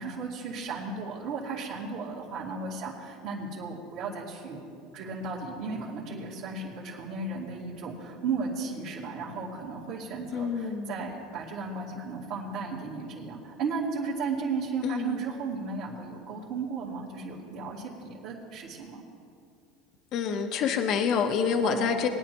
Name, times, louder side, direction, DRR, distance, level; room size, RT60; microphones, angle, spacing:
voice 1, 0.0-4.6 4.9-19.0 21.6-22.0, right 4 dB, 60° right, -7 dB, 2.4 m, -35 dB
voice 2, 10.3-11.0 14.8-15.2 20.1-22.1, left 6 dB, 50° left, 5 dB, 1.0 m, -27 dB
21.0 x 10.0 x 3.1 m, 2.4 s
supercardioid pair, 115°, 0 cm